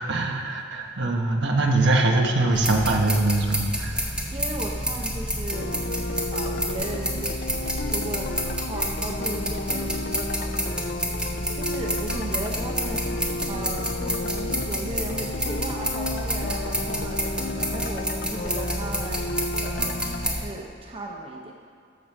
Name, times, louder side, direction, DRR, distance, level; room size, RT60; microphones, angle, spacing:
voice 1, 0.1-4.1, right 2 dB, 60° right, 2 dB, 1.1 m, -22 dB
sound 1, 2.5-20.4, equal, 5° right, 1.0 m, -29 dB
voice 2, 4.3-5.8 6.3-11.0 11.6-13.1 13.5-21.5, right 1 dB, 30° right, 0 dB, 0.6 m, -36 dB
sound 2, 5.5-20.3, left 2 dB, 50° left, 0.5 m, -33 dB
13.5 x 5.1 x 6.0 m, 2.4 s
head